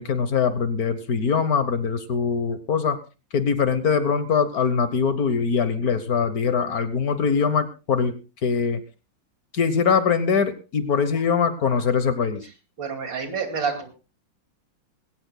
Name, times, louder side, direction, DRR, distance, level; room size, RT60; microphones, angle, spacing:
voice 1, 0.0-3.0 3.3-8.8 9.5-12.4, left 6 dB, 55° left, 12 dB, 1.4 m, -22 dB
voice 2, 12.8-13.9, right 5 dB, 70° right, 6 dB, 3.1 m, -28 dB
21.0 x 17.0 x 2.2 m, 0.31 s
omnidirectional pair, 2.1 m